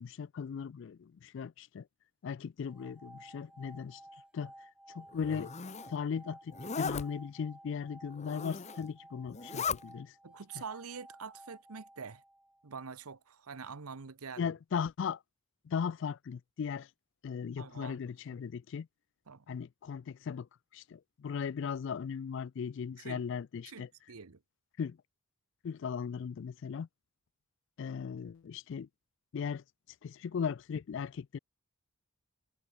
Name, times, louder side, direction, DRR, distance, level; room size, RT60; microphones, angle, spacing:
voice 1, 0.0-1.9 2.2-4.0 4.3-4.5 4.9-5.5 5.9-10.1 14.4-15.2 15.7-16.9 17.2-18.9 19.5-20.5 20.7-23.9 24.8-25.0 25.6-26.9 27.8-28.9 29.3-29.6 30.0-31.4, left 6 dB, 55° left, 0.3 m, -37 dB
sound 1, 2.6-12.8, right 1 dB, 5° right, 3.2 m, -55 dB
Zipper (clothing), 5.1-5.9 6.5-7.0 8.1-8.9 9.3-9.8, left 5 dB, 30° left, 0.8 m, -37 dB
voice 2, 10.2-12.2 12.6-14.5 17.6-18.0 18.3-18.4 19.3-19.4 23.0-23.2 23.6-24.4, right 5 dB, 85° right, 0.9 m, -45 dB
head